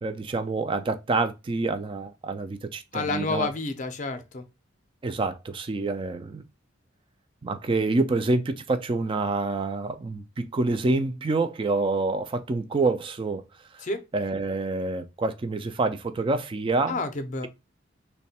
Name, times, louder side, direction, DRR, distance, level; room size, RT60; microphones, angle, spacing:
voice 1, 0.0-3.5 5.0-6.4 7.4-13.4 13.7-13.9 14.1-17.0, right 3 dB, 25° right, 0.3 m, -27 dB
voice 2, 2.9-4.4 13.8-14.0 16.9-17.5, left 3 dB, 40° left, 0.5 m, -29 dB
3.1 x 2.2 x 4.1 m
head